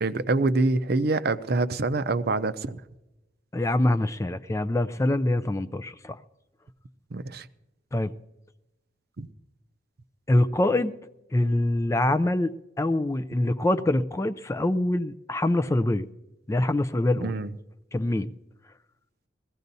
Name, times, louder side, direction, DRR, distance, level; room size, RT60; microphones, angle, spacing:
voice 1, 0.0-2.8 7.1-7.5 9.2-9.3 17.2-17.5, right 3 dB, 55° right, 0.6 m, -25 dB
voice 2, 3.5-6.2 7.9-8.1 10.3-10.9 11.3-16.1 16.5-17.3 17.9-18.3, left 1 dB, 15° left, 0.4 m, -24 dB
21.5 x 15.5 x 2.7 m
head